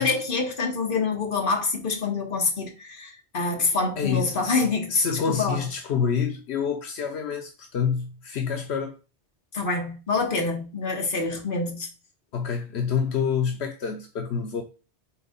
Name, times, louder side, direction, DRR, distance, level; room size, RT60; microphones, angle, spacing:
voice 1, 0.0-5.6 9.5-11.9, left 4 dB, 55° left, 1.4 m, -26 dB
voice 2, 4.0-8.9 12.3-14.6, left 6 dB, 80° left, 1.0 m, -27 dB
4.7 x 3.9 x 5.1 m
omnidirectional pair, 1.1 m